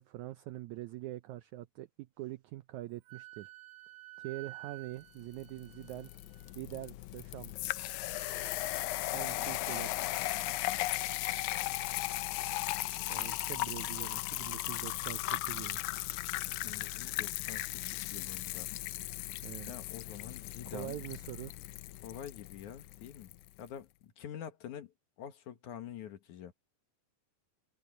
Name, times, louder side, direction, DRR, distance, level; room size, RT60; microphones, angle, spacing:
voice 1, 0.0-3.5 4.2-6.1 6.5-7.5 9.1-10.3 13.1-15.8 19.4-19.8 20.7-21.5, right 16 dB, 85° right, 1.7 m, -44 dB
Wind instrument woodwind instrument, 3.1-6.5, right 19 dB, 65° right, 3.3 m, -51 dB
sound 1, 5.4-23.4, left 17 dB, 80° left, 1.7 m, -37 dB
voice 2, 16.6-18.7 19.7-21.0 22.0-23.3 23.6-24.9 25.2-26.5, left 9 dB, 65° left, 2.7 m, -46 dB
omnidirectional pair, 4.0 m